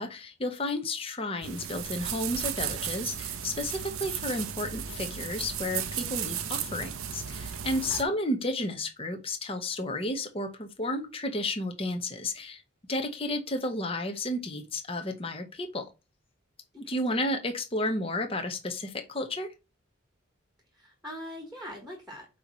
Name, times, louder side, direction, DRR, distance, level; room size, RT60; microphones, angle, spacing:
voice 1, 0.0-12.6 12.9-15.8 16.9-19.5, left 1 dB, 25° left, 1.1 m, -32 dB
sound 1, 1.4-8.0, right 9 dB, 90° right, 0.8 m, -35 dB
voice 2, 7.7-8.1 16.7-17.2 20.7-22.3, equal, ahead, 1.5 m, -43 dB
8.1 x 3.1 x 5.5 m
head